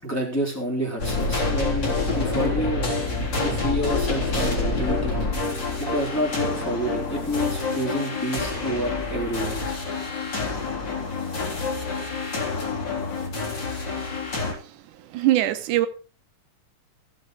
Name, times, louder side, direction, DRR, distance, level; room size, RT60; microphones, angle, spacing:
voice 1, 0.0-3.0 3.4-5.4 5.8-9.8, equal, 5° left, 3.1 m, -29 dB
sound 1, 1.0-14.5, left 3 dB, 35° left, 4.3 m, -27 dB
sound 2, 1.9-7.4, right 4 dB, 55° right, 3.4 m, -44 dB
voice 2, 15.1-15.9, right 14 dB, 90° right, 2.4 m, -21 dB
15.0 x 7.9 x 4.7 m
omnidirectional pair, 3.4 m